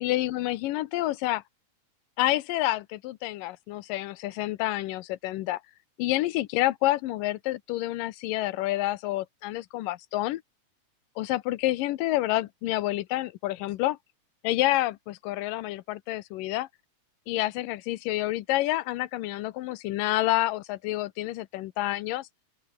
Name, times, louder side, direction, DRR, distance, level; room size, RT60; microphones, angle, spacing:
voice 1, 0.0-1.4 2.2-5.6 6.0-10.4 11.2-14.0 14.4-16.7 17.3-22.3, left 16 dB, 85° left, 2.5 m, -28 dB
open air
omnidirectional pair, 3.8 m